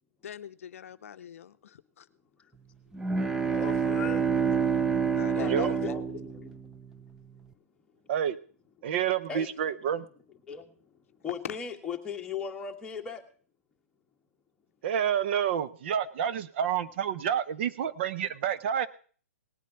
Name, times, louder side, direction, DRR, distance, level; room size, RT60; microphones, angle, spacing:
voice 1, 0.2-2.1 5.1-5.9, left 9 dB, 60° left, 12 dB, 0.7 m, -44 dB
sound 1, 2.9-7.0, right 6 dB, 5° right, 0.6 m, -28 dB
voice 2, 3.4-4.6 5.3-6.6 9.3-9.5 10.0-10.1 10.5-10.7 11.2-13.2, left 6 dB, 10° left, 1 dB, 1.6 m, -38 dB
voice 3, 8.8-10.1 14.8-18.9, right 9 dB, 45° right, 13 dB, 0.8 m, -29 dB
18.5 x 8.4 x 5.7 m, 0.42 s
hypercardioid pair, 140°, 8 cm